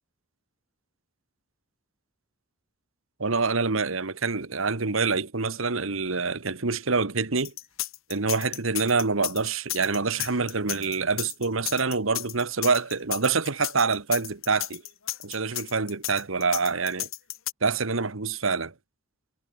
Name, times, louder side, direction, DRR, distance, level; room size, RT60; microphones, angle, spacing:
voice 1, 3.2-7.5 8.1-14.8 15.2-17.1 17.6-18.7, right 4 dB, 80° right, 1.5 m, -26 dB
sound 1, 7.4-17.5, left 15 dB, 85° left, 2.1 m, -33 dB
head